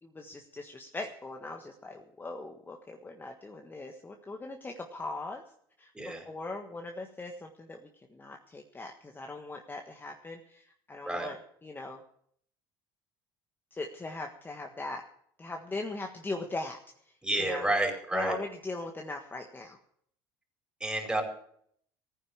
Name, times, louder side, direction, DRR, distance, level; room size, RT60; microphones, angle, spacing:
voice 1, 0.0-5.4 5.8-12.0 13.7-15.0 15.4-16.8 17.4-17.7 18.1-19.8, left 2 dB, 20° left, 3 dB, 1.5 m, -40 dB
voice 2, 17.2-18.4 20.8-21.2, right 1 dB, 10° right, 2 dB, 5.0 m, -30 dB
14.5 x 10.0 x 7.3 m, 0.66 s
supercardioid pair, 80°, 10 cm